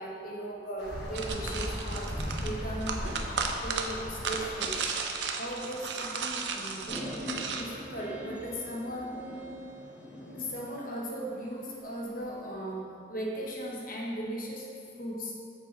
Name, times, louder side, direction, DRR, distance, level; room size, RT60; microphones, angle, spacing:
voice 1, 0.0-3.0 3.6-4.9 5.4-7.1 7.4-9.2 10.3-14.7 15.0-15.3, right 1 dB, 50° left, -3 dB, 1.3 m, -37 dB
sound 1, 0.8-5.1 7.1-7.2 7.4-7.5 8.4-8.5 10.9-11.0 11.6-11.7 12.2-12.3, equal, 75° left, 1.3 m, -37 dB
sound 2, 1.1-7.6, right 5 dB, 85° right, 0.6 m, -35 dB
sound 3, 6.9-10.6, equal, 10° right, 1.1 m, -42 dB
6.8 x 6.3 x 4.0 m, 2.4 s
head